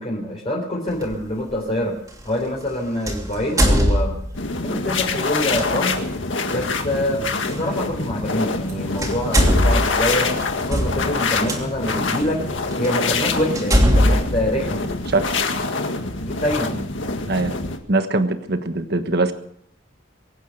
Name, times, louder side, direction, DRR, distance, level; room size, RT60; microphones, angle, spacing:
voice 1, 0.0-1.9 2.2-4.2 4.6-6.0 6.5-10.3 10.6-12.4 12.8-14.8 16.2-16.8, left 1 dB, 35° left, -3 dB, 3.7 m, -25 dB
sound 1, 1.0-1.1 3.1-4.5 5.5-5.7 7.5-7.6 8.6-8.7 9.0-11.6 12.3-12.4 12.8-12.9 13.6-15.3, equal, 20° right, 3.1 m, -19 dB
sound 2, 4.3-17.8, left 3 dB, 85° left, 1.8 m, -25 dB
voice 2, 17.9-19.3, right 2 dB, 60° right, 8 dB, 1.4 m, -21 dB
23.5 x 9.3 x 6.6 m, 0.69 s
head